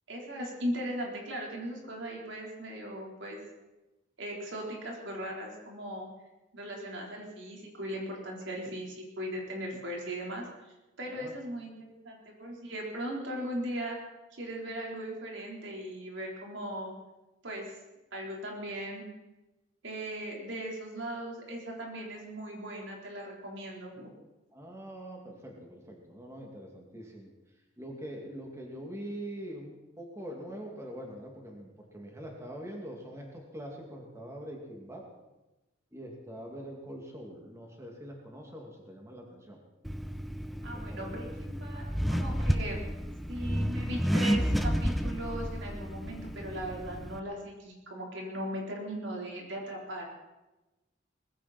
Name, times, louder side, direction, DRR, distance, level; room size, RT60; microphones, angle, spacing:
voice 1, 0.1-3.4 4.2-6.1 6.5-10.5 11.0-14.0 14.3-16.9 17.4-17.7 18.1-19.0 19.8-24.1 40.6-42.8 43.3-50.0, right 1 dB, 90° right, -1 dB, 4.2 m, -38 dB
voice 2, 11.1-11.4 24.5-27.3 27.8-35.1 35.9-39.6 40.5-41.2 42.3-42.5, right 1 dB, 15° right, 0 dB, 2.5 m, -44 dB
Accelerating revving vroom, 39.9-47.2, equal, ahead, 0.7 m, -31 dB
20.0 x 15.5 x 4.4 m, 1.0 s
head